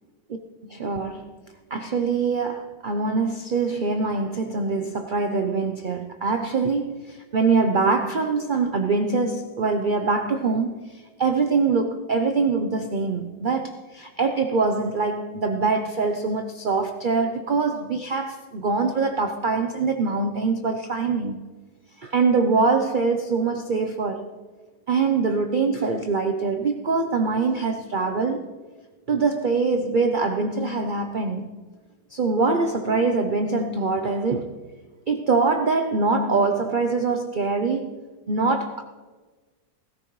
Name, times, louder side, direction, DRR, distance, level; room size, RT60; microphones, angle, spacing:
voice 1, 0.6-1.3 1.7-21.4 22.0-24.3 24.9-28.5 29.1-31.5 32.1-34.5 35.1-38.0 38.3-38.8, right 4 dB, 70° right, 5 dB, 0.4 m, -24 dB
19.5 x 14.0 x 3.1 m, 1.4 s
omnidirectional pair, 1.9 m